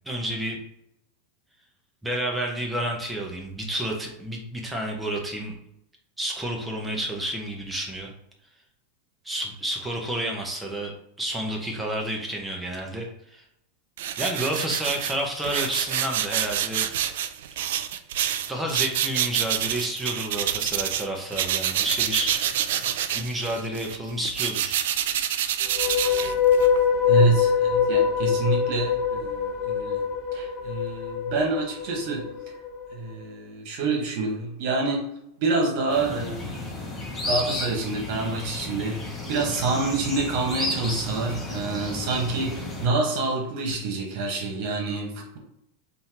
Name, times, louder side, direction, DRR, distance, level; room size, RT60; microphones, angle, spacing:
voice 1, 0.1-0.6 2.0-5.5 6.2-8.1 9.2-13.4 14.2-16.9 18.5-22.4 23.1-24.8, right 1 dB, 10° right, 0 dB, 1.1 m, -30 dB
sound 1, 14.0-21.1 21.3-26.8, right 10 dB, 75° right, 0.3 m, -27 dB
sound 2, 25.6-32.9, left 7 dB, 40° left, 0.6 m, -24 dB
voice 2, 27.1-30.0 30.3-32.2 32.9-35.0 35.4-45.4, right 3 dB, 60° right, 1 dB, 1.6 m, -27 dB
sound 3, 35.9-42.9, left 2 dB, 15° left, 1.3 m, -33 dB
3.5 x 2.9 x 4.5 m, 0.78 s
hypercardioid pair, 110°, 0 cm